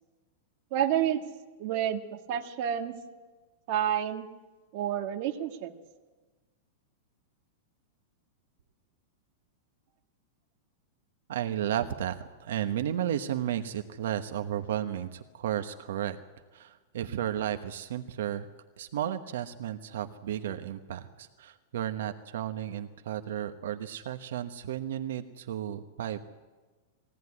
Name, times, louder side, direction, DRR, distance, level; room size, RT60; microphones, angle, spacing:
voice 1, 0.7-1.2 1.6-2.0 2.3-2.9 3.7-4.3 4.7-5.7, right 10 dB, 40° right, 4 dB, 1.6 m, -29 dB
voice 2, 11.3-16.2 16.5-18.5 18.8-26.2, right 10 dB, 70° right, 7 dB, 1.1 m, -33 dB
21.0 x 17.0 x 9.8 m, 1.3 s
supercardioid pair, 180°, 0 cm